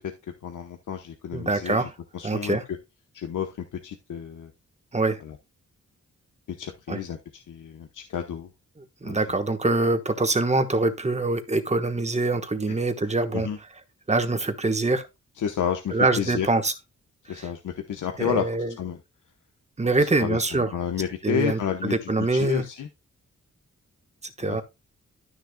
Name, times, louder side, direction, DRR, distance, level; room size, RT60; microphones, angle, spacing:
voice 1, 0.4-1.9 2.1-2.6 3.1-4.5 5.2-5.4 6.6-8.5 9.0-9.2 13.3-13.6 15.4-16.5 17.3-18.5 18.8-19.0 20.0-22.9 24.4-24.6, left 8 dB, 90° left, 1.0 m, -31 dB
voice 2, 1.3-1.9 2.2-2.6 4.9-5.2 6.9-7.0 9.0-13.5 14.1-15.0 15.9-16.7 17.3-17.5 18.2-18.7 19.8-20.7 21.2-22.6 24.4-24.6, right 2 dB, 20° right, 1.2 m, -24 dB
12.5 x 6.6 x 2.2 m
wide cardioid pair, 105°, 30 cm